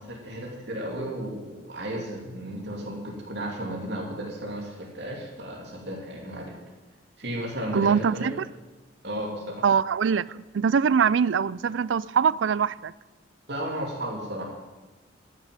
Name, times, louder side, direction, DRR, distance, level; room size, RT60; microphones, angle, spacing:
voice 1, 0.0-6.5 7.2-8.3 9.0-9.6 13.5-14.5, equal, 60° right, -2 dB, 3.0 m, -34 dB
voice 2, 7.7-8.3 9.6-12.9, right 6 dB, 80° right, 21 dB, 0.4 m, -23 dB
14.5 x 7.4 x 9.4 m, 1.2 s
head